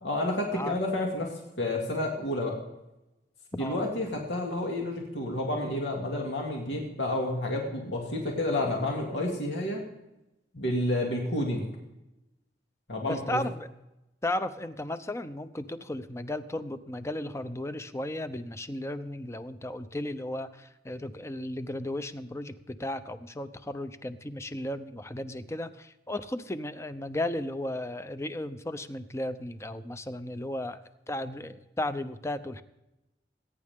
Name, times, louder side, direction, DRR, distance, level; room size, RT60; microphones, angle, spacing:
voice 1, 0.0-1.3 1.6-2.6 3.5-9.8 10.5-11.7 12.9-13.4, left 1 dB, 80° left, -1 dB, 2.5 m, -30 dB
voice 2, 13.1-13.7 14.2-32.6, left 1 dB, 15° left, 11 dB, 0.7 m, -35 dB
21.0 x 9.8 x 3.7 m, 0.95 s
head